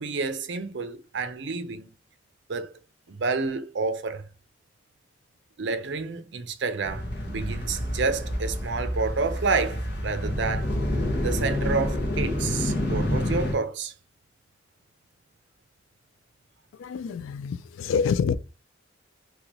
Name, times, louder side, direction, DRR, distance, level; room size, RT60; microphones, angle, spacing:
voice 1, 0.0-1.9 2.5-2.8 3.1-4.2 5.6-10.7 11.2-13.9, right 4 dB, 65° right, 0.6 m, -29 dB
sound 1, 6.8-13.5, left 1 dB, 60° left, 1.2 m, -28 dB
voice 2, 16.8-18.3, left 6 dB, 90° left, 0.3 m, -27 dB
3.7 x 2.9 x 3.0 m
head